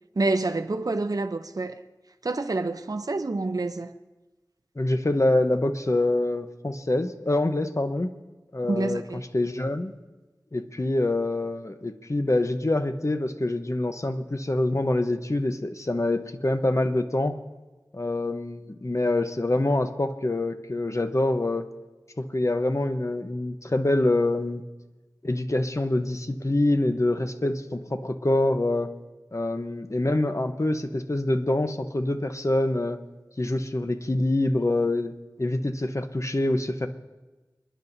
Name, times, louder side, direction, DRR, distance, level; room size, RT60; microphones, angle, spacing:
voice 1, 0.2-1.8 2.2-3.9 8.7-9.3, right 2 dB, 55° right, 0.6 m, -27 dB
voice 2, 4.8-8.1 8.5-9.9 10.5-17.3 17.9-21.7 22.2-24.6 25.2-28.9 29.3-33.0 33.4-35.1 35.4-36.9, left 2 dB, 45° left, 0.9 m, -25 dB
29.0 x 10.5 x 2.7 m
wide cardioid pair, 50°, 7 cm